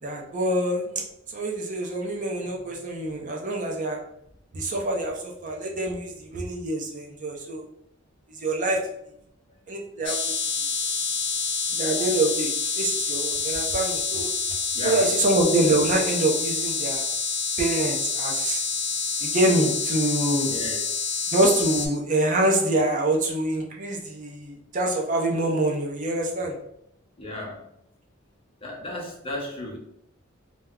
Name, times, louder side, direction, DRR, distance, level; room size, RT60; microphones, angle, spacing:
voice 1, 0.0-4.0 4.5-7.6 8.3-8.8 9.7-10.3 11.7-14.3 14.8-17.1 17.6-18.6 19.2-20.5 21.3-26.6, right 1 dB, 40° right, -1 dB, 0.5 m, -25 dB
voice 2, 2.4-2.7 3.0-3.2 14.7-15.1 20.4-20.8 27.2-27.6 28.6-29.8, left 1 dB, 25° left, -2 dB, 0.7 m, -34 dB
sound 1, 10.0-21.9, left 4 dB, 65° left, 0.8 m, -27 dB
2.2 x 2.0 x 3.5 m, 0.74 s
head